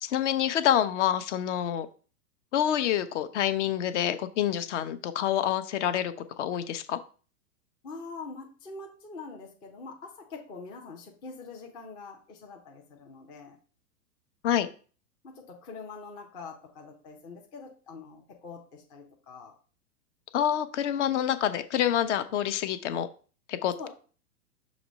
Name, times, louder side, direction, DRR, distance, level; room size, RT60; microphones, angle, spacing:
voice 1, 0.0-1.9 2.5-7.0 14.4-14.7 20.3-23.1 23.5-23.9, left 10 dB, 50° left, 11 dB, 0.7 m, -27 dB
voice 2, 7.8-13.6 15.2-19.5 23.8-23.9, left 4 dB, 10° left, 0 dB, 0.4 m, -44 dB
6.0 x 3.0 x 5.1 m, 0.39 s
figure-of-eight pair, 105°, 47 cm